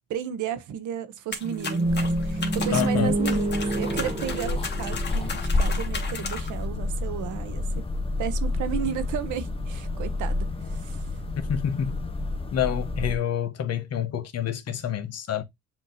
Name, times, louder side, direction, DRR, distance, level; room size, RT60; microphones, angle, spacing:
voice 1, 0.1-7.8 8.2-11.1, right 9 dB, 80° right, 0.8 m, -33 dB
sound 1, 1.3-6.6, left 5 dB, 35° left, 1.4 m, -36 dB
sound 2, 1.4-5.5, right 2 dB, 20° right, 0.7 m, -27 dB
sound 3, 1.8-13.2, left 2 dB, 20° left, 0.7 m, -30 dB
voice 2, 2.7-3.1 11.5-12.0 12.5-15.4, left 9 dB, 55° left, 0.9 m, -27 dB
7.2 x 2.7 x 2.7 m
cardioid pair, 90°, 30 cm